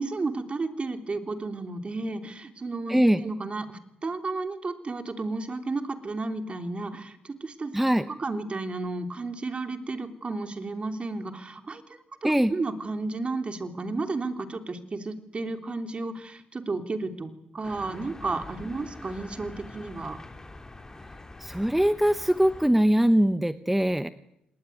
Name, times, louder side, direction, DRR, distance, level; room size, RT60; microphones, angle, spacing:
voice 1, 0.0-7.7 8.1-20.2, right 3 dB, 35° right, 7 dB, 3.3 m, -33 dB
voice 2, 2.9-3.2 7.7-8.1 12.2-12.5 21.4-24.1, right 1 dB, 5° right, 11 dB, 1.0 m, -22 dB
sound 1, 17.6-22.7, left 2 dB, 20° left, 3.3 m, -45 dB
26.5 x 19.5 x 9.4 m, 0.83 s
cardioid pair, 65°, 3 cm